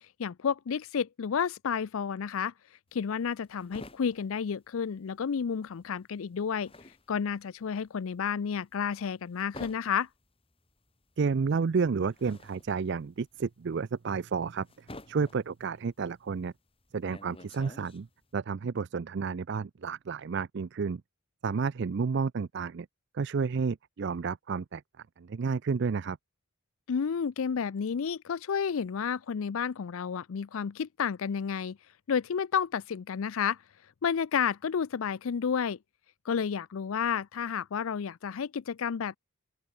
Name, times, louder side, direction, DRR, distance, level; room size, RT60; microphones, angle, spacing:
voice 1, 0.2-2.5 2.9-6.7 7.1-10.1 26.9-31.8 32.1-33.6 34.0-35.8 36.3-39.2, left 7 dB, 70° left, 0.4 m, -31 dB
sound 1, 2.9-5.4 5.7-18.3, left 1 dB, 25° left, 5.5 m, -51 dB
voice 2, 11.2-16.5 16.9-18.1 18.3-21.0 21.4-22.9 23.1-24.8 25.2-26.2, right 5 dB, 50° right, 0.4 m, -31 dB
open air
head